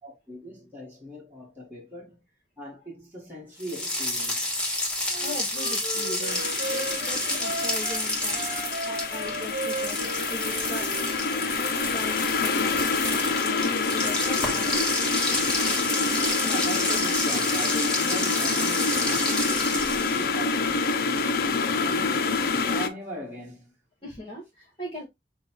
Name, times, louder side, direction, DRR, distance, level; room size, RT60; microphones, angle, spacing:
voice 1, 0.0-2.2 2.6-4.8 15.9-23.7, equal, 10° right, 1.5 m, -40 dB
sound 1, 3.6-20.4, left 1 dB, 5° left, 1.3 m, -30 dB
Wind instrument woodwind instrument, 5.1-8.0 8.3-11.7, right 2 dB, 50° right, 0.9 m, -36 dB
voice 2, 5.2-8.4 8.8-10.9 11.6-14.8 24.0-25.1, equal, 30° left, 1.3 m, -39 dB
sound 2, 6.3-22.9, left 4 dB, 55° left, 0.5 m, -27 dB
6.3 x 2.4 x 2.9 m
head